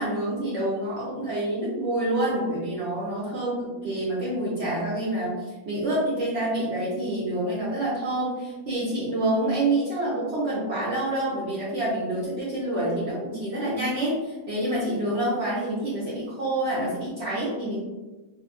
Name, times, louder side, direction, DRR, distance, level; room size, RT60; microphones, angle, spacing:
voice 1, 0.0-5.4 5.7-17.8, right 1 dB, 60° right, -8 dB, 0.7 m, -27 dB
2.6 x 2.3 x 2.4 m, 1.2 s
omnidirectional pair, 1.7 m